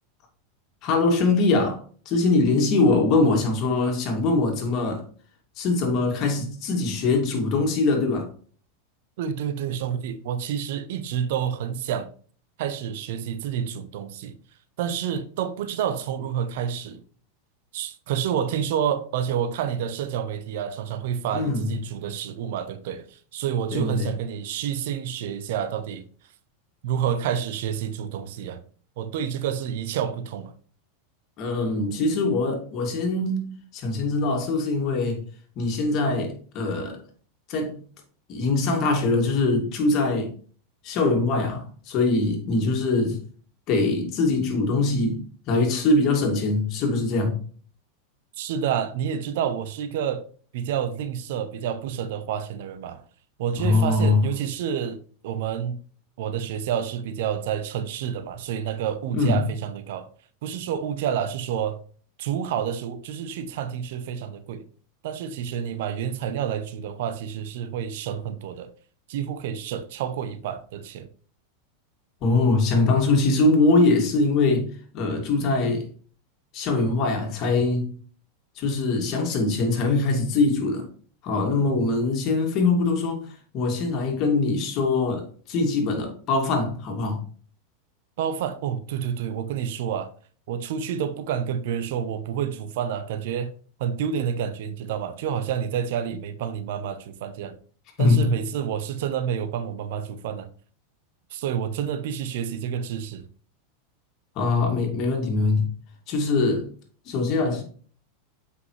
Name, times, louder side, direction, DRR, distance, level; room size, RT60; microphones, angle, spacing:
voice 1, 0.8-5.0 5.6-8.3 21.3-21.7 23.7-24.1 31.4-35.2 35.6-37.0 37.5-37.8 38.3-40.3 40.8-43.2 43.7-45.2 45.5-47.4 53.6-54.2 59.1-59.5 72.2-75.9 76.5-78.0 78.6-80.9 81.2-83.2 83.5-87.2 98.0-98.3 104.4-105.7 106.1-106.7 107.1-107.6, left 3 dB, 45° left, 2.5 m, -22 dB
voice 2, 9.2-12.1 12.6-14.3 14.8-17.0 17.7-26.0 26.8-28.6 29.0-30.5 48.4-50.2 50.5-53.0 53.4-55.0 55.2-55.8 56.2-60.1 60.4-61.8 62.2-64.6 65.0-68.7 69.1-71.1 88.2-90.1 90.5-93.5 93.8-97.6 98.0-100.5 101.3-103.2, right 8 dB, 65° right, 0.8 m, -29 dB
7.8 x 5.6 x 3.2 m
hypercardioid pair, 95°, 0 cm